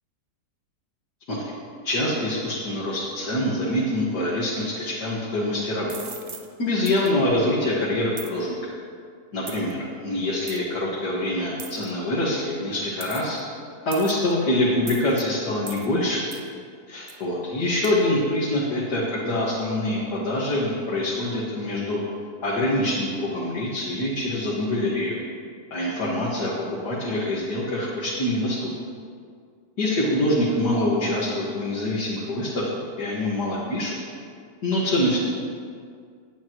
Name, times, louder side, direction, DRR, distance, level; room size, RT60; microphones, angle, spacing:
voice 1, 1.8-6.0 6.6-8.6 9.3-13.4 13.8-16.3 16.9-22.0 22.4-25.2 25.7-26.5 26.8-28.7 29.8-32.7 33.0-34.0 34.6-35.2, left 1 dB, 80° left, -7 dB, 2.5 m, -25 dB
sound 1, 5.9-6.5 6.9-7.1 8.2-8.3 9.5-9.7 10.5-10.6 11.6-11.9 13.0-13.4 13.9-14.3 14.9-15.2 15.7-15.9 16.3-16.5 17.1-17.2 17.8-17.9, right 5 dB, 70° right, 0.3 m, -39 dB
18.0 x 11.0 x 3.1 m, 2.1 s
omnidirectional pair, 1.7 m